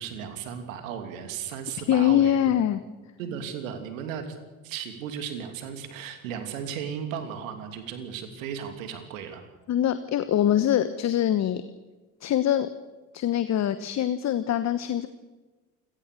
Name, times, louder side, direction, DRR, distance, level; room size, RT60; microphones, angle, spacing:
voice 1, 0.0-2.4 3.2-4.3 4.6-9.4, right 8 dB, 70° right, 7 dB, 3.0 m, -35 dB
voice 2, 1.9-2.8 9.7-11.6 12.2-12.7 13.1-15.1, left 11 dB, 40° left, 12 dB, 1.2 m, -23 dB
28.0 x 17.0 x 6.8 m, 1.2 s
figure-of-eight pair, 60°, 41 cm